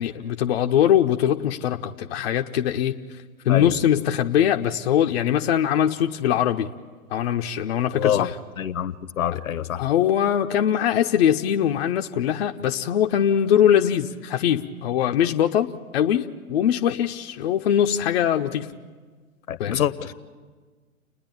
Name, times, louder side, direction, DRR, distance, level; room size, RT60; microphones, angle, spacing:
voice 1, 0.0-3.2 3.4-6.7 7.1-8.3 9.7-18.7 19.6-19.8, left 10 dB, 45° left, 0.7 m, -22 dB
voice 2, 7.9-8.3 8.6-9.8 19.5-20.1, left 10 dB, 65° left, 1.0 m, -25 dB
30.0 x 10.0 x 8.8 m
figure-of-eight pair, 120°, 44 cm